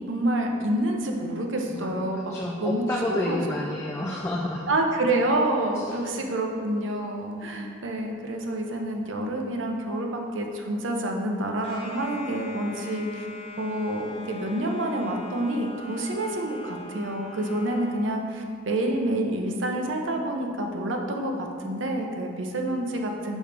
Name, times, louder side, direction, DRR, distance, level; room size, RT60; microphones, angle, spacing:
voice 1, 0.1-2.3 2.6-2.8 3.1-3.4 4.7-13.3 13.6-23.4, right 1 dB, 85° right, 2 dB, 0.7 m, -28 dB
voice 2, 1.7-4.7 5.7-6.0, left 1 dB, 15° left, -2 dB, 0.3 m, -30 dB
sound 1, 11.6-18.1, left 2 dB, 30° left, 0.8 m, -42 dB
6.2 x 5.0 x 3.3 m, 2.2 s
head